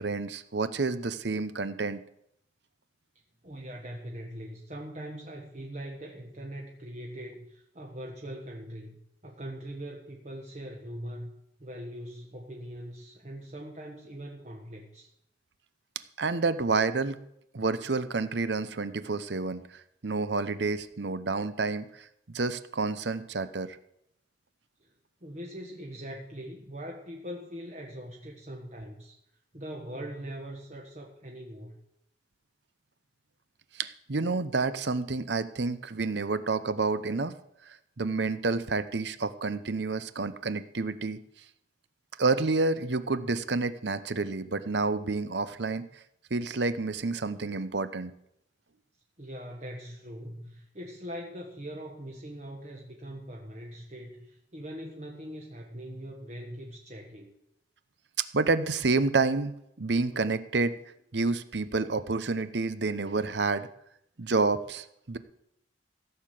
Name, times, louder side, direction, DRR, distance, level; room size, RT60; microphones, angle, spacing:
voice 1, 0.0-2.0 16.2-17.2 17.5-23.8 33.7-37.3 37.7-41.2 42.2-45.9 46.3-48.1 58.3-60.7 61.1-63.7 64.2-65.2, right 3 dB, 65° right, 13 dB, 0.8 m, -29 dB
voice 2, 3.4-11.3 11.6-15.1 24.8-24.9 25.2-29.2 29.5-31.8 49.2-57.3, equal, 40° right, 0 dB, 1.4 m, -41 dB
15.5 x 6.7 x 7.6 m, 0.77 s
head